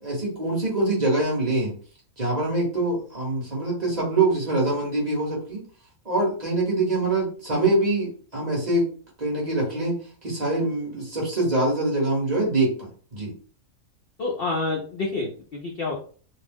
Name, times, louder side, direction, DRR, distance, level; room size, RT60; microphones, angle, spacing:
voice 1, 0.0-1.7 2.2-5.6 6.0-8.9 9.2-13.3, right 2 dB, 35° right, -4 dB, 0.9 m, -24 dB
voice 2, 14.2-15.9, left 3 dB, 65° left, -1 dB, 0.6 m, -28 dB
2.6 x 2.0 x 3.4 m, 0.42 s
omnidirectional pair, 1.6 m